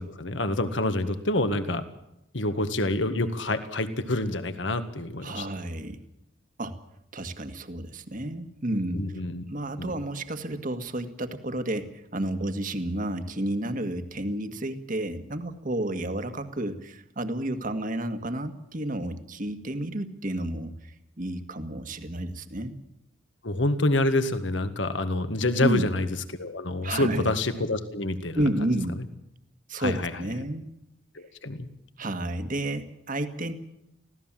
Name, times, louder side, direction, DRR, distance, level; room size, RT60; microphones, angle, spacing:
voice 1, 0.0-1.8 2.3-5.5 8.9-9.4 9.8-9.9 23.4-26.1 26.4-28.4 29.0-29.1 29.8-30.1 31.2-31.7, left 2 dB, 70° left, 10 dB, 1.8 m, -27 dB
voice 2, 5.2-6.0 6.6-6.8 7.1-9.0 9.5-22.8 25.6-25.9 26.8-27.3 28.3-29.0 29.7-30.7 32.0-33.5, right 1 dB, 45° right, 9 dB, 1.8 m, -31 dB
25.0 x 17.0 x 7.5 m, 0.84 s
head